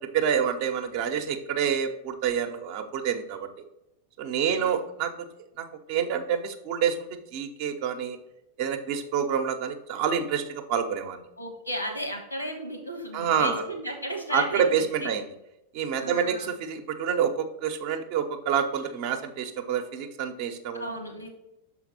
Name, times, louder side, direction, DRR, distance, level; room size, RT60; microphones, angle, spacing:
voice 1, 0.1-3.5 4.2-5.1 5.6-7.0 7.3-8.2 8.6-11.2 13.1-13.6 14.3-15.3 15.7-20.8, right 7 dB, 45° right, 6 dB, 0.8 m, -27 dB
voice 2, 4.4-4.7 11.4-15.1 16.0-16.5 20.7-21.3, equal, 90° left, 4 dB, 1.6 m, -34 dB
6.6 x 4.4 x 4.2 m, 0.89 s
figure-of-eight pair, 90°, 0 cm